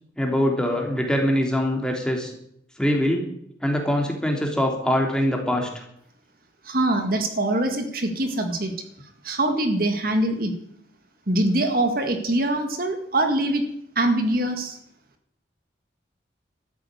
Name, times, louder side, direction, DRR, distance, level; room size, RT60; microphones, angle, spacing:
voice 1, 0.2-2.3 2.8-3.3 3.6-5.8, equal, 5° left, 1 dB, 2.9 m, -23 dB
voice 2, 6.6-8.7 9.2-10.5 11.3-13.6 14.0-14.8, right 1 dB, 50° right, 5 dB, 2.0 m, -23 dB
13.5 x 8.9 x 9.5 m, 0.71 s
head